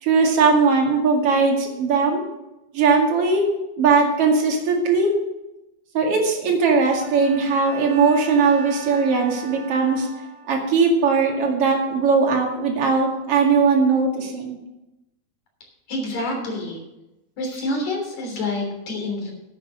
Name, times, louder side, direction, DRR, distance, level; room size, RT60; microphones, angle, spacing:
voice 1, 0.0-2.2 2.7-3.4 3.7-5.1 5.9-10.1 10.5-14.6, right 4 dB, 50° right, 0 dB, 3.2 m, -19 dB
Bowed string instrument, 7.0-10.7, right 4 dB, 80° right, 3.1 m, -39 dB
voice 2, 15.9-16.8 17.4-19.3, left 2 dB, 70° left, 1 dB, 4.7 m, -27 dB
11.5 x 9.1 x 6.3 m, 0.96 s
omnidirectional pair, 3.4 m